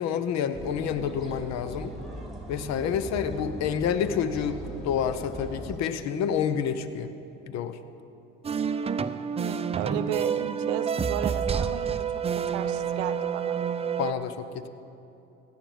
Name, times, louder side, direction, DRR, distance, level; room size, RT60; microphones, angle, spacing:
voice 1, 0.0-1.9 2.5-4.6 4.8-7.1 7.5-7.8 14.0-14.7, left 8 dB, 55° left, 11 dB, 0.9 m, -28 dB
sound 1, 0.5-5.8, right 1 dB, ahead, 2.7 m, -39 dB
sound 2, 8.4-14.1, right 7 dB, 20° right, 0.5 m, -28 dB
voice 2, 9.4-12.0 12.3-13.6, right 10 dB, 80° right, 12 dB, 0.8 m, -34 dB
16.0 x 10.5 x 5.2 m, 3.0 s
hypercardioid pair, 75°, 31 cm